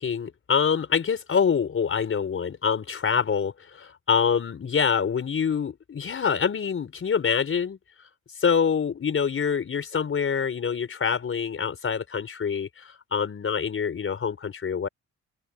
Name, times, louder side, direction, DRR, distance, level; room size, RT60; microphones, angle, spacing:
voice 1, 0.0-7.8 8.4-14.9, left 6 dB, 45° left, 4.8 m, -25 dB
open air
cardioid pair, 90°, 30 cm